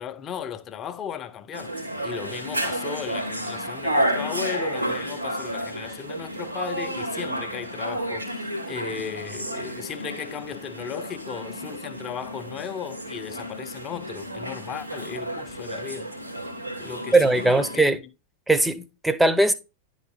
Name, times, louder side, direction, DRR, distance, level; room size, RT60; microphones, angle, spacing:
voice 1, 0.0-16.1 16.8-17.9, left 8 dB, 30° left, 0.7 m, -36 dB
sound 1, 1.5-17.8, right 1 dB, 90° right, 2.1 m, -31 dB
voice 2, 17.1-18.0 18.5-19.5, right 2 dB, 5° right, 0.7 m, -20 dB
10.5 x 4.0 x 3.7 m
figure-of-eight pair, 90°, 0 cm